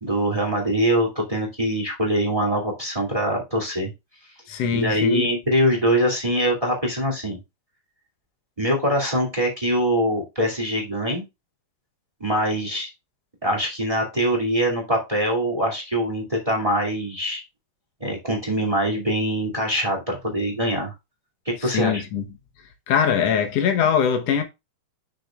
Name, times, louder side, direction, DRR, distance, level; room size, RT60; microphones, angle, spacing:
voice 1, 0.0-3.9 4.7-7.4 8.6-11.2 12.2-12.9 13.4-17.4 18.0-20.9 21.4-22.0, equal, 10° right, 1.7 m, -23 dB
voice 2, 4.5-5.3 21.6-22.2 22.9-24.4, left 7 dB, 85° left, 1.4 m, -22 dB
10.0 x 6.5 x 2.4 m
omnidirectional pair, 4.5 m